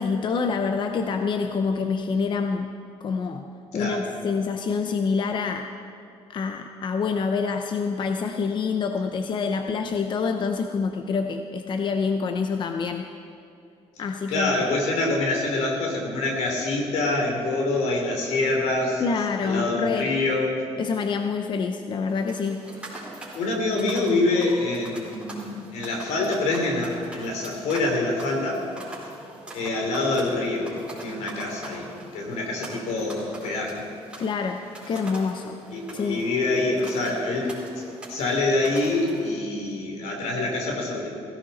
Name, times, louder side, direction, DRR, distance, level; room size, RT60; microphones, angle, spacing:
voice 1, 0.0-2.7 3.0-3.4 3.7-5.7 6.3-13.0 14.0-14.6 19.0-20.1 20.8-22.6 34.2-34.6 34.9-35.6 35.9-36.2, left 5 dB, 45° left, 6 dB, 0.8 m, -26 dB
voice 2, 14.3-19.0 19.4-20.6 23.3-28.6 29.5-30.7 31.0-31.9 32.1-33.8 35.7-37.8 38.1-41.1, left 2 dB, 85° left, 1 dB, 3.2 m, -25 dB
sound 1, 22.0-39.4, right 1 dB, 10° right, 4.4 m, -43 dB
17.0 x 16.0 x 4.2 m, 2.5 s
cardioid pair, 120°, 11 cm